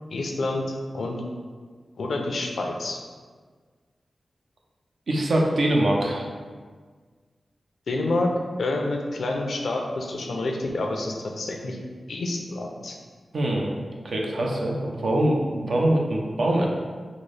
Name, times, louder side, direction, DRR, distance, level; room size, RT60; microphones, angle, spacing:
voice 1, 0.1-0.6 0.9-1.2 2.0-3.0 7.9-8.3 8.6-11.8 12.1-12.9, left 2 dB, 85° left, 1 dB, 0.4 m, -28 dB
voice 2, 5.1-6.2 13.3-13.7 14.0-16.7, right 1 dB, 80° right, -1 dB, 0.5 m, -23 dB
3.8 x 2.0 x 3.2 m, 1.6 s
wide cardioid pair, 70°, 0 cm